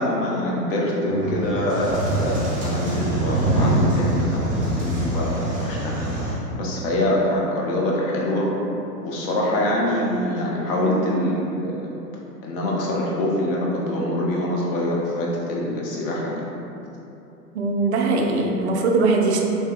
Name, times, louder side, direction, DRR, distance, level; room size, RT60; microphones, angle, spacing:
voice 1, 0.0-5.4 5.6-5.9 6.5-8.5 9.0-11.8 12.4-16.4, left 1 dB, 35° left, -3 dB, 0.7 m, -24 dB
sound 1, 1.1-6.3, right 1 dB, 15° right, 1.0 m, -24 dB
voice 2, 17.5-19.4, right 3 dB, 45° right, 1 dB, 0.4 m, -21 dB
3.2 x 2.9 x 3.5 m, 2.9 s
hypercardioid pair, 120°, 49 cm